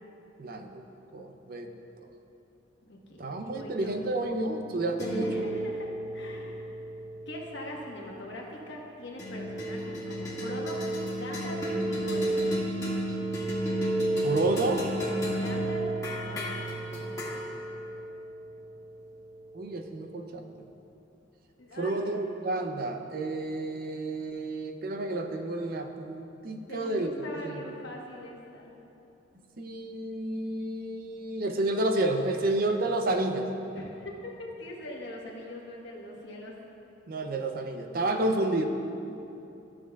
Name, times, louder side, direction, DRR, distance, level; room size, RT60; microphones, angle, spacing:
voice 1, 0.4-0.8 1.1-1.7 2.0-2.1 3.2-5.5 14.2-14.9 19.5-20.7 21.8-27.1 27.4-27.6 29.6-33.5 37.1-38.6, right 2 dB, 50° right, 5 dB, 0.5 m, -30 dB
voice 2, 2.8-4.0 5.1-6.6 7.3-12.5 15.3-16.7 21.6-22.2 26.7-28.7 33.8-36.5 38.2-38.3, left 1 dB, 65° left, -1 dB, 1.2 m, -42 dB
sound 1, 3.4-8.0 9.2-19.7, right 1 dB, 15° left, 1.7 m, -33 dB
13.5 x 7.2 x 2.3 m, 2.9 s
head